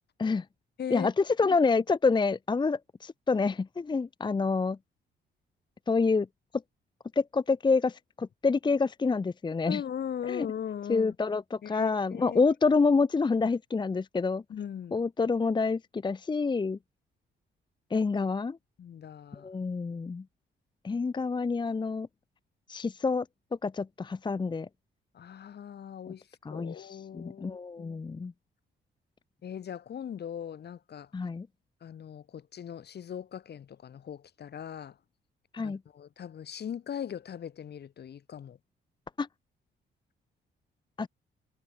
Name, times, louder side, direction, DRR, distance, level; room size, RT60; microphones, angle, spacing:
voice 1, 0.9-4.8 5.9-6.3 7.2-9.8 10.3-10.5 10.9-14.4 14.9-16.8 17.9-18.6 19.3-20.2 20.8-22.1 22.7-23.3 23.6-24.7 26.1-26.2 26.4-28.3 31.1-31.5 35.5-35.8 39.2-39.3 41.0-41.1, left 4 dB, 20° left, 0.7 m, -27 dB
voice 2, 9.7-11.1 11.6-12.4 14.5-15.0 18.8-19.5 25.1-26.2 26.5-28.0 29.4-31.1 31.8-35.0 35.6-38.6, left 8 dB, 55° left, 2.7 m, -39 dB
cardioid pair, 90°, 20 cm